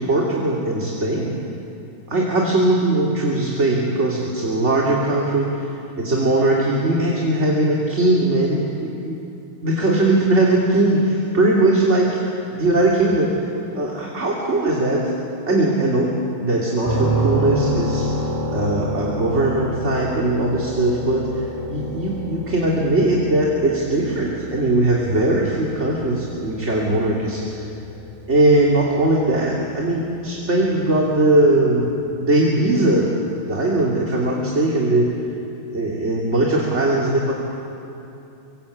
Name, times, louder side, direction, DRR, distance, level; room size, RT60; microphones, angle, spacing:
voice 1, 0.0-1.3 2.1-5.5 6.0-9.2 9.6-12.2 12.5-15.1 15.4-18.1 18.5-27.4 28.3-31.9 32.2-33.1 33.5-35.1 35.7-37.3, right 2 dB, 30° right, -3 dB, 3.1 m, -20 dB
sound 1, 16.8-30.6, right 1 dB, 10° right, 5.2 m, -29 dB
25.0 x 24.5 x 8.5 m, 2.8 s
omnidirectional pair, 2.3 m